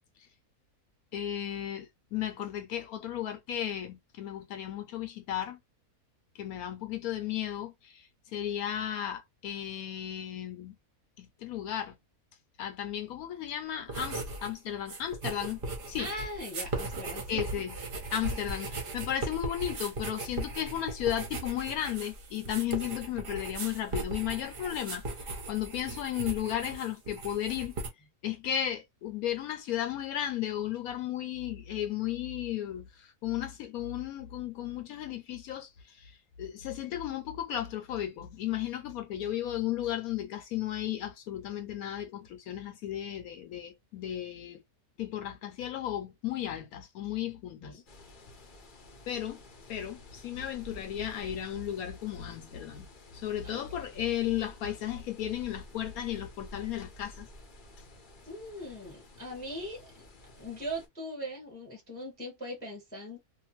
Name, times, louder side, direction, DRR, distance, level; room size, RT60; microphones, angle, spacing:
voice 1, 1.1-5.6 6.3-10.8 11.2-12.0 12.6-16.1 17.3-17.7 18.1-25.0 25.5-27.7 28.2-36.1 36.4-44.6 45.0-47.8 49.1-49.4 49.7-52.9 53.1-57.3, left 11 dB, 75° left, 1.0 m, -34 dB
sound 1, 13.9-14.5 14.8-27.9, right 2 dB, 45° right, 0.8 m, -38 dB
voice 2, 16.0-17.5 47.6-47.8 53.4-53.6 58.3-60.1 60.4-63.2, equal, 5° left, 0.9 m, -40 dB
sound 2, 47.9-60.9, left 1 dB, 45° left, 0.7 m, -52 dB
2.7 x 2.2 x 2.9 m
omnidirectional pair, 1.6 m